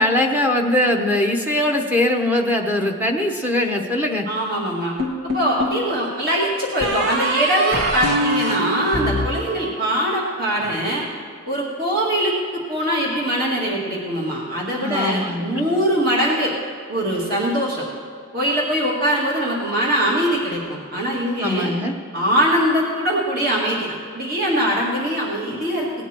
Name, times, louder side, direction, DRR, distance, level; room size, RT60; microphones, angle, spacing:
voice 1, 0.0-4.3 14.8-15.7 21.4-21.9, left 1 dB, 10° right, 1 dB, 0.9 m, -21 dB
voice 2, 4.3-4.9 5.3-11.0 11.5-16.5 16.9-17.8 18.3-21.7 22.1-23.9 24.1-25.9, equal, 45° right, -4 dB, 2.2 m, -22 dB
sound 1, 5.0-5.8 6.8-10.1, right 1 dB, 90° right, 1.5 m, -24 dB
18.0 x 9.1 x 4.5 m, 2.2 s
head